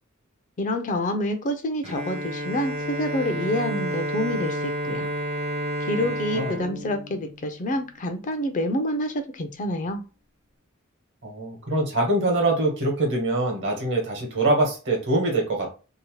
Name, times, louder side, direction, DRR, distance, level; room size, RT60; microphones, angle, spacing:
voice 1, 0.6-5.1 5.9-10.0, left 1 dB, 35° left, 7 dB, 0.4 m, -27 dB
Bowed string instrument, 1.8-7.8, equal, 30° right, 0.4 m, -30 dB
voice 2, 11.2-15.7, right 2 dB, 60° right, 1 dB, 1.1 m, -24 dB
2.8 x 2.1 x 2.9 m, 0.32 s
head